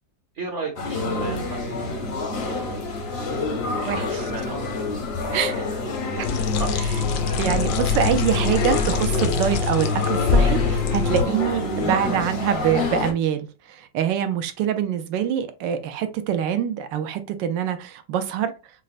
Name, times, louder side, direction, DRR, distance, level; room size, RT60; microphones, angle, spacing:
voice 1, 0.3-1.9 2.2-2.7 3.0-3.2 3.7-4.8 5.2-7.5 7.9-8.1 8.6-8.7, right 3 dB, 55° right, 0.8 m, -37 dB
sound 1, 0.8-13.1, left 3 dB, 50° left, 0.8 m, -28 dB
voice 2, 3.9-4.2 5.3-5.5 6.2-6.3 7.4-18.5, right 9 dB, 80° right, 1.3 m, -25 dB
sound 2, 6.2-11.2, left 5 dB, 80° left, 1.3 m, -23 dB
6.2 x 2.1 x 2.4 m
omnidirectional pair, 1.9 m